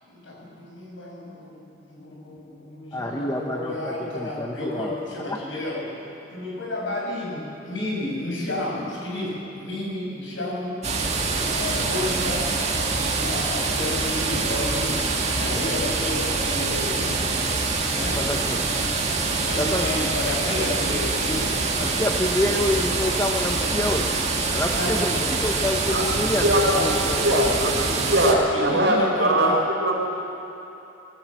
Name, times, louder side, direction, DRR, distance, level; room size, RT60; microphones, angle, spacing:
voice 1, 0.0-5.9 6.3-10.8 11.3-12.6 13.0-15.0 15.3-17.3 18.0-18.3 18.8-18.9 19.4-22.5 24.7-25.1 28.5-29.6, left 1 dB, 75° left, -4 dB, 6.7 m, -31 dB
voice 2, 2.9-4.9 5.3-5.4 18.2-18.7 19.6-20.1 21.8-24.1 24.5-27.4 28.3-28.4, left 1 dB, 15° left, 1 dB, 0.9 m, -27 dB
sound 1, 10.8-28.3, right 3 dB, 35° right, 2.0 m, -25 dB
voice 3, 25.9-26.9 27.2-30.0, right 1 dB, 60° right, -2 dB, 4.7 m, -22 dB
22.5 x 15.5 x 7.8 m, 2.9 s
head